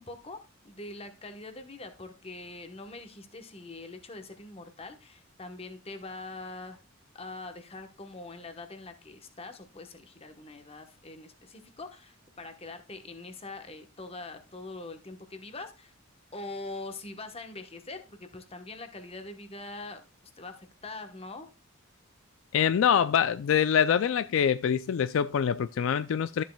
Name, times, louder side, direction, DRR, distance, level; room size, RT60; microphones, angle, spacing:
voice 1, 0.0-6.8 7.1-15.9 16.3-20.0 20.4-21.5, left 2 dB, 30° left, 1.1 m, -43 dB
voice 2, 22.5-26.4, left 8 dB, 70° left, 0.3 m, -25 dB
13.0 x 7.3 x 2.2 m
head